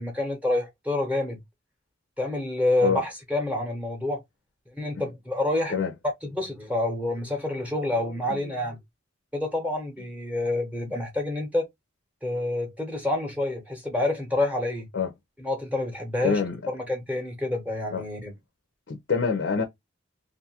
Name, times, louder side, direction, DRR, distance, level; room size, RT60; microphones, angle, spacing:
voice 1, 0.0-1.4 2.2-4.2 4.8-5.8 6.2-8.8 9.3-11.7 12.2-14.9 15.4-16.4 16.7-18.3, left 2 dB, 5° right, 0.7 m, -28 dB
voice 2, 16.2-16.6 17.9-18.0 18.9-19.6, left 6 dB, 65° left, 0.5 m, -25 dB
2.6 x 2.3 x 2.8 m
head